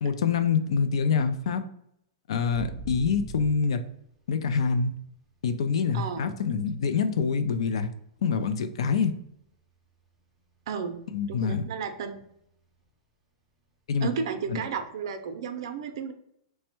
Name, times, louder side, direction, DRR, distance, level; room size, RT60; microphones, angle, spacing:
voice 1, 0.0-1.7 2.3-3.8 4.3-4.9 5.4-7.9 8.2-9.1 11.1-11.6 13.9-14.1 14.5-14.6, left 5 dB, 75° left, 9 dB, 0.4 m, -26 dB
sound 1, 2.5-5.8 6.2-8.4 8.7-9.1 9.4-11.3 11.6-11.7 12.0-12.4 12.8-12.9 15.1-15.2, right 4 dB, 10° right, 0.6 m, -42 dB
voice 2, 5.9-6.3 10.7-11.0 11.3-12.2 14.0-16.1, right 6 dB, 55° right, 7 dB, 0.5 m, -33 dB
3.3 x 2.1 x 4.3 m, 0.73 s
hypercardioid pair, 160°, 3 cm